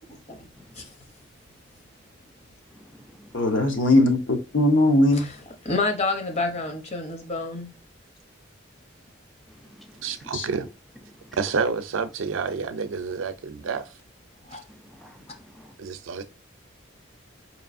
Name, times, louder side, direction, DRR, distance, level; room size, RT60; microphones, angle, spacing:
voice 1, 0.1-0.5 0.8-0.9 5.1-5.3 5.6-7.7 14.5-14.6, left 3 dB, 30° left, 0.7 m, -29 dB
voice 2, 2.7-3.4 9.5-10.3 11.2-11.4 14.7-15.7, equal, ahead, 0.3 m, -51 dB
voice 3, 3.3-5.3 10.3-10.5, left 1 dB, 75° left, 0.9 m, -20 dB
voice 4, 10.0-10.7 11.4-13.9 15.8-16.2, right 5 dB, 85° right, 0.5 m, -29 dB
4.7 x 2.9 x 2.5 m
head